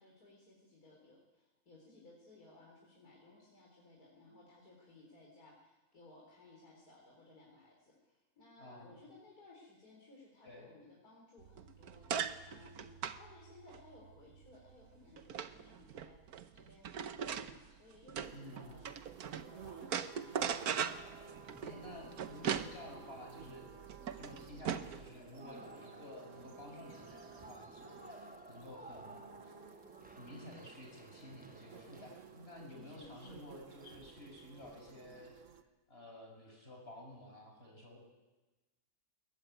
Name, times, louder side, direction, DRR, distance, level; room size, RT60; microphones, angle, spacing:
voice 1, 0.0-16.1 16.5-20.5 25.4-25.7 32.7-33.5, left 2 dB, 85° left, -2 dB, 4.7 m, -60 dB
voice 2, 8.6-8.9 10.4-10.7 18.3-18.8 21.6-23.7 24.1-29.6 30.1-35.4 35.9-38.0, left 1 dB, 40° left, 1 dB, 6.9 m, -52 dB
sound 1, 11.4-19.5 19.8-25.1, right 8 dB, 80° right, 1.5 m, -40 dB
sound 2, 18.2-35.6, right 7 dB, 60° right, 1.6 m, -56 dB
sound 3, 20.4-35.3, right 1 dB, 5° right, 0.9 m, -57 dB
22.0 x 20.5 x 9.3 m, 1.2 s
omnidirectional pair, 1.6 m